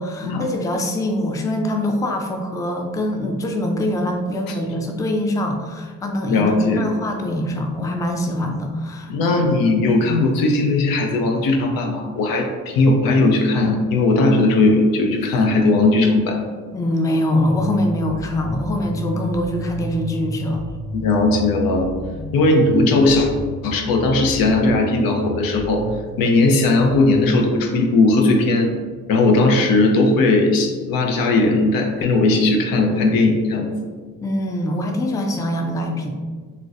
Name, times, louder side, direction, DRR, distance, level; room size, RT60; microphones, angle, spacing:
voice 1, 0.0-6.5 6.8-9.4 16.7-20.7 22.1-22.3 34.2-36.1, left 1 dB, 10° left, 3 dB, 0.3 m, -23 dB
voice 2, 6.3-6.9 9.1-16.4 20.9-21.9 22.3-23.3 23.6-25.8 26.2-28.7 29.1-33.7, left 2 dB, 80° left, 3 dB, 0.6 m, -17 dB
sound 1, 17.4-27.4, right 1 dB, 25° left, 1.3 m, -32 dB
3.8 x 2.1 x 2.4 m, 1.5 s
supercardioid pair, 65°, 34 cm